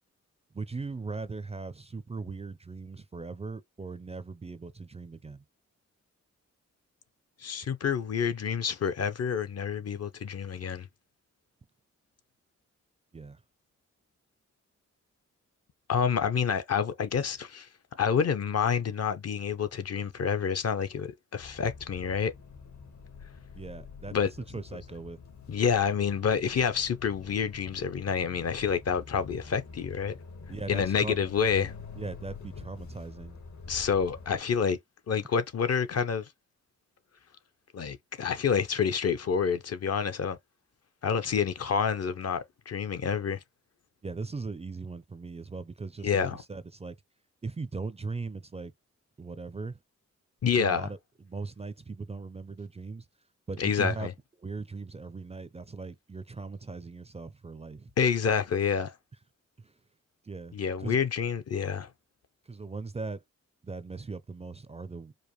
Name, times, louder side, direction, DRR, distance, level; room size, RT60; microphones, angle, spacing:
voice 1, 0.5-5.4 13.1-13.4 23.6-25.2 30.5-31.2 32.0-33.4 44.0-47.0 47.4-48.7 49.2-49.8 50.6-51.0 51.3-53.1 53.5-54.1 54.4-57.9 59.6-59.7 60.2-61.0 62.5-63.2 63.6-65.1, right 4 dB, 20° right, 0.4 m, -39 dB
voice 2, 7.4-10.9 15.9-17.7 18.0-22.3 24.1-24.3 25.5-30.2 30.7-31.7 33.7-34.8 35.1-36.3 37.7-40.4 41.0-43.4 46.0-46.4 50.4-50.9 53.6-54.1 58.0-58.9 60.5-61.9, left 6 dB, 55° left, 0.7 m, -28 dB
sound 1, 21.4-34.4, left 5 dB, 75° left, 1.5 m, -46 dB
5.0 x 2.1 x 3.0 m
cardioid pair, 75°, 29 cm